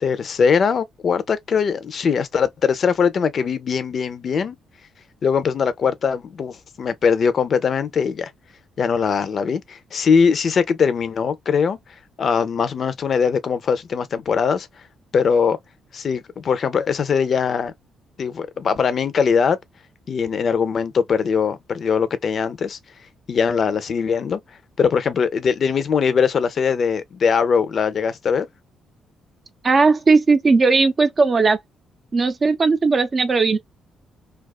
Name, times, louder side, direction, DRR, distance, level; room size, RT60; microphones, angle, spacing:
voice 1, 0.0-4.6 5.2-8.3 8.8-11.8 12.2-14.7 15.1-15.6 15.9-17.7 18.2-19.6 20.1-22.8 23.3-24.4 24.8-28.5, left 6 dB, 50° left, 0.5 m, -21 dB
voice 2, 29.6-31.6 32.1-33.6, right 4 dB, 35° right, 0.5 m, -17 dB
2.3 x 2.3 x 2.3 m
cardioid pair, 90°, 0 cm